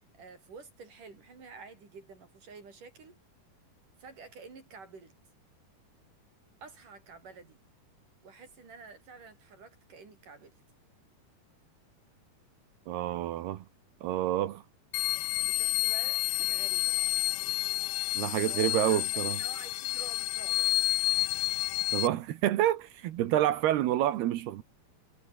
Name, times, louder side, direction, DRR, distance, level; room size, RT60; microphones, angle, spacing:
voice 1, 0.1-3.2 4.0-5.1 6.6-7.6 8.2-10.6 15.5-17.1 18.5-20.8, right 4 dB, 55° right, 6.7 m, -50 dB
voice 2, 12.9-13.6 14.0-14.6 18.1-19.4 21.9-24.6, right 13 dB, 80° right, 3.3 m, -28 dB
sound 1, 14.9-22.1, left 18 dB, 80° left, 2.6 m, -30 dB
omnidirectional pair, 4.6 m